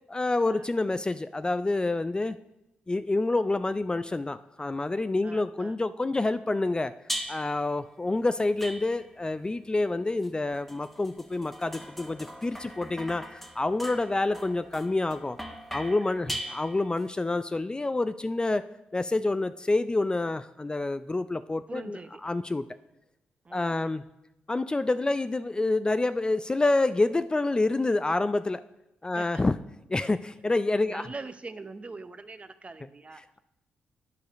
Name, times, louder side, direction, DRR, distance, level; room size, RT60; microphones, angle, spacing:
voice 1, 0.1-2.4 2.9-6.9 7.3-15.4 15.7-22.0 22.2-22.6 23.5-24.0 24.5-28.6 29.0-29.5 29.9-31.0, left 2 dB, 20° left, 12 dB, 0.4 m, -28 dB
voice 2, 5.2-5.8 16.1-16.6 21.7-22.2 23.4-24.0 29.2-29.4 30.8-33.2, right 3 dB, 35° right, 11 dB, 0.6 m, -43 dB
sound 1, 7.1-7.6 8.6-9.3 10.2-17.1, equal, 5° left, 1.2 m, -40 dB
9.5 x 4.9 x 5.1 m, 0.88 s
supercardioid pair, 55°, 4 cm